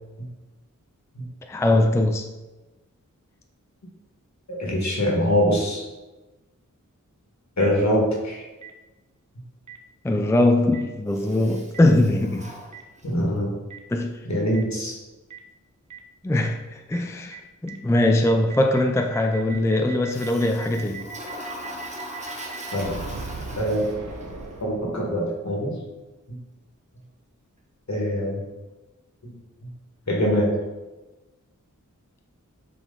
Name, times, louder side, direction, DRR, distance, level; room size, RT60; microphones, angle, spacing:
voice 1, 1.5-2.3 10.0-12.5 13.9-14.2 16.2-21.1, left 1 dB, 10° left, 0.4 m, -21 dB
voice 2, 4.5-5.9 7.6-8.5 13.0-13.5 14.3-15.0 22.7-22.9 23.6-23.8 24.6-25.9 27.9-28.4 29.2-29.3 30.1-30.5, equal, 60° left, 1.8 m, -23 dB
Boom, 7.6-7.7 8.6-8.7 9.7-9.8 10.7-10.8 11.7-11.8 12.7-12.8 13.7-13.8 14.5-14.6 15.3-15.4 15.9-16.0 16.4-16.5 16.9-17.0 17.3-17.4 17.7-25.2, right 5 dB, 65° right, 0.9 m, -38 dB
Toilet flush, 11.1-13.3 20.1-24.2, equal, 20° right, 1.1 m, -39 dB
7.2 x 3.4 x 3.9 m
wide cardioid pair, 60°, 32 cm